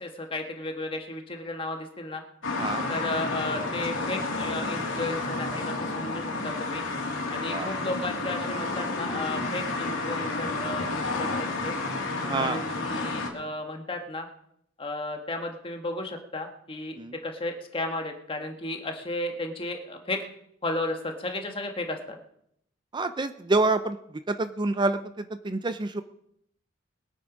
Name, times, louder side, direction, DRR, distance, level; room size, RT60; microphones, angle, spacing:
voice 1, 0.0-2.2 2.9-6.8 7.3-11.7 12.4-14.3 14.8-17.0 17.2-20.2 20.6-22.2, left 2 dB, 30° left, 3 dB, 1.7 m, -34 dB
sound 1, 2.4-13.3, left 2 dB, 80° left, 3.0 m, -31 dB
voice 2, 12.3-12.6 17.0-17.1 22.9-24.0 24.3-26.0, right 2 dB, 25° right, 10 dB, 0.5 m, -27 dB
21.5 x 8.1 x 5.1 m, 0.74 s
head